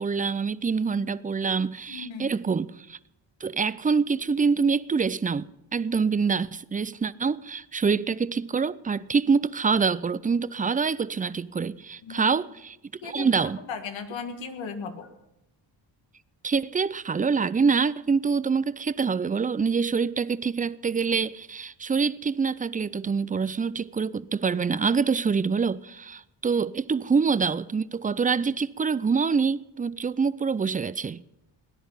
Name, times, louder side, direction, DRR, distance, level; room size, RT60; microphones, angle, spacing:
voice 1, 0.0-3.0 3.4-5.5 5.7-12.8 13.0-13.6 16.4-31.2, right 5 dB, 20° right, 0.5 m, -25 dB
voice 2, 1.9-2.3 12.0-12.3 13.0-13.3 13.6-15.1, left 5 dB, 90° left, 1.7 m, -36 dB
17.5 x 10.0 x 5.6 m
cardioid pair, 65°, 44 cm